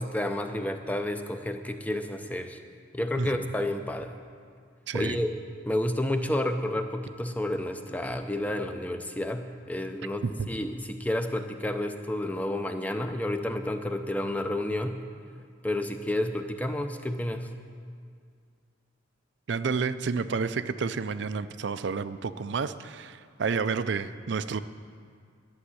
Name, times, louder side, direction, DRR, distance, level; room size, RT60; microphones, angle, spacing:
voice 1, 0.0-2.6 2.9-4.2 4.9-5.3 5.7-15.0 15.6-17.5, left 1 dB, 10° left, 7 dB, 0.5 m, -30 dB
voice 2, 4.9-5.2 10.2-10.5 19.5-24.6, right 5 dB, 60° right, 13 dB, 0.4 m, -30 dB
11.5 x 7.3 x 9.6 m, 2.1 s
head